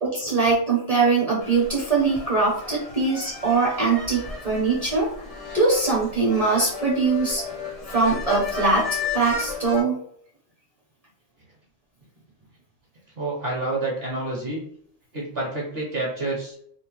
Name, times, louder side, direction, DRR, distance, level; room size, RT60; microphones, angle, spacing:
voice 1, 0.0-5.1 5.5-7.4 7.9-9.9, right 3 dB, 35° right, -4 dB, 0.6 m, -22 dB
sound 1, 1.4-9.8, left 3 dB, 50° left, 0.4 m, -34 dB
voice 2, 13.2-14.6 15.1-16.6, right 2 dB, 55° right, -3 dB, 1.0 m, -28 dB
2.6 x 2.1 x 2.9 m, 0.64 s
omnidirectional pair, 1.3 m